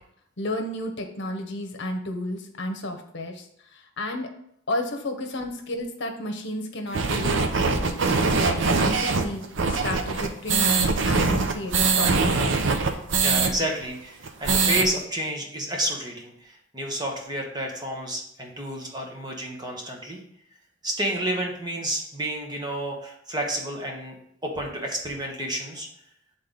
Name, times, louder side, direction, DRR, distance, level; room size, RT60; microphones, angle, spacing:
voice 1, 0.4-3.4 3.7-4.3 4.7-7.9 8.2-12.7, left 1 dB, 60° left, 4 dB, 0.9 m, -32 dB
sound 1, 6.9-13.5 13.8-13.9 14.2-14.9, right 4 dB, 65° right, 0.7 m, -22 dB
voice 2, 13.2-20.2 20.8-24.2 24.4-25.9, right 1 dB, 20° right, 1 dB, 1.1 m, -30 dB
8.5 x 3.8 x 3.9 m, 0.73 s
head